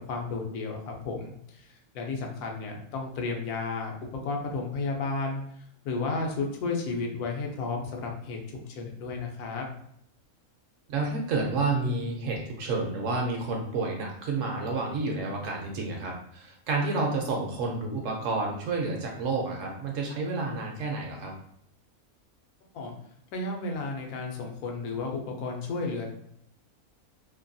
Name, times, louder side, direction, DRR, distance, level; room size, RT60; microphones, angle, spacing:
voice 1, 0.1-1.7 1.9-3.9 4.2-5.4 5.8-9.6 22.7-23.0 23.3-26.1, left 3 dB, 85° left, 2 dB, 1.1 m, -32 dB
voice 2, 10.9-21.3, right 3 dB, 65° right, 0 dB, 0.9 m, -30 dB
2.8 x 2.2 x 2.5 m, 0.70 s
omnidirectional pair, 1.5 m